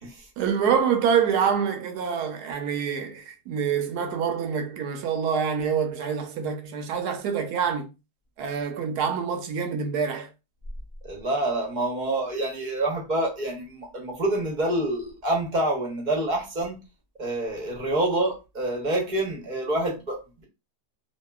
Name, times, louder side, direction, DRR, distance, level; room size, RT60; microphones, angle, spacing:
voice 1, 0.4-7.9 8.4-10.3, right 7 dB, 85° right, 1.2 m, -26 dB
voice 2, 11.0-16.8 17.2-20.4, right 1 dB, 40° right, 0.7 m, -27 dB
2.8 x 2.5 x 2.2 m
omnidirectional pair, 1.7 m